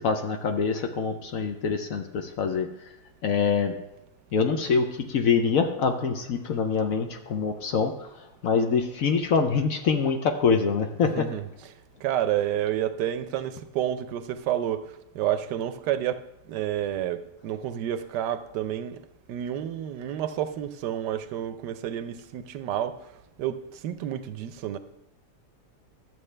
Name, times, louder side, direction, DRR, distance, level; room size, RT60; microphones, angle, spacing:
voice 1, 0.0-2.7 3.2-3.7 4.3-8.1 8.4-11.3, left 5 dB, 60° left, 1.0 m, -25 dB
voice 2, 11.0-11.7 12.0-23.1 23.4-24.8, right 11 dB, 80° right, 1.2 m, -30 dB
12.0 x 7.7 x 3.3 m
omnidirectional pair, 1.8 m